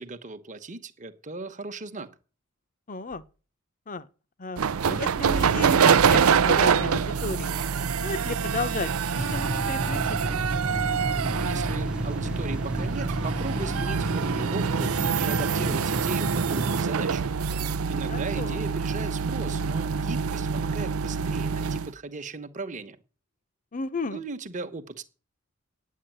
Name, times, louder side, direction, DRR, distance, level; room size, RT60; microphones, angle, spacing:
voice 1, 0.0-2.1 11.2-17.3 17.9-23.0 24.1-25.1, right 3 dB, 35° right, 1.1 m, -37 dB
voice 2, 2.9-3.2 3.9-4.1 4.4-7.6 8.0-10.5 18.1-18.6 23.7-24.2, left 3 dB, 40° left, 0.9 m, -34 dB
sound 1, 4.6-21.9, right 6 dB, 90° right, 0.5 m, -25 dB
sound 2, 9.2-16.8, equal, 5° right, 0.7 m, -33 dB
9.6 x 8.4 x 9.1 m
head